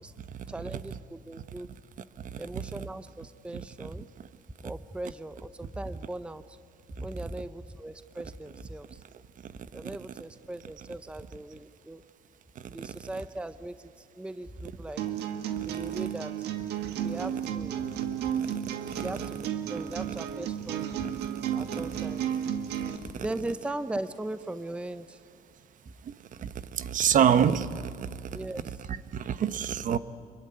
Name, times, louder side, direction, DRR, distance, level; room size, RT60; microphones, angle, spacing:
voice 1, 0.5-1.7 2.4-4.1 4.6-6.6 7.0-9.0 9.7-12.0 12.7-15.0 15.6-16.5 17.0-17.9 19.0-20.9 21.5-22.2 23.2-25.2 28.3-28.7, right 1 dB, 5° right, 0.7 m, -39 dB
voice 2, 12.5-12.9 15.6-16.0 16.9-17.1 18.4-18.5 18.9-19.1 21.2-21.8 23.1-23.3 26.0-28.5 28.9-30.0, right 8 dB, 50° right, 1.1 m, -29 dB
sound 1, 15.0-23.0, right 9 dB, 80° right, 1.9 m, -33 dB
26.5 x 23.0 x 9.7 m
cardioid pair, 110°, 17 cm